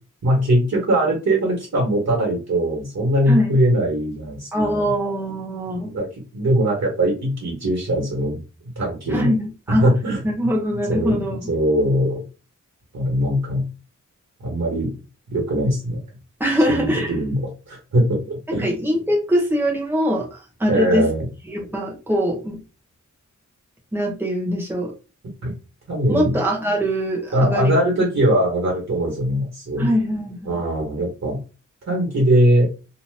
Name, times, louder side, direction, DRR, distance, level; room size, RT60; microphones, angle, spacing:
voice 1, 0.2-4.9 5.7-6.1 6.3-9.3 9.7-10.2 10.9-11.2 11.5-12.2 12.9-13.6 14.4-14.9 15.3-16.0 16.7-18.7 20.7-21.3 25.4-25.5 25.9-26.4 27.3-29.9 30.4-31.4 31.9-32.7, right 1 dB, 60° right, -1 dB, 1.2 m, -21 dB
voice 2, 3.3-3.6 4.5-5.9 9.1-9.9 10.2-11.5 16.4-17.1 18.5-21.1 21.5-22.6 23.9-24.9 26.1-27.8 29.8-30.6, equal, 5° right, -2 dB, 0.9 m, -22 dB
2.8 x 2.1 x 3.2 m, 0.31 s
wide cardioid pair, 165°, 31 cm